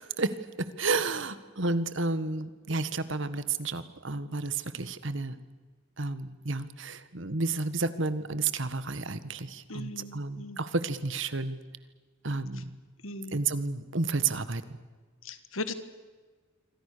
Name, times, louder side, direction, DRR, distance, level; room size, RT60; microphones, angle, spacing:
voice 1, 0.0-5.4 6.0-11.6 12.2-12.7 13.3-14.8, right 3 dB, 65° right, 13 dB, 1.6 m, -31 dB
voice 2, 9.7-10.6 12.5-12.6 13.0-13.4 15.2-15.7, left 2 dB, 85° left, 11 dB, 1.7 m, -38 dB
27.5 x 24.0 x 6.9 m, 1.4 s
head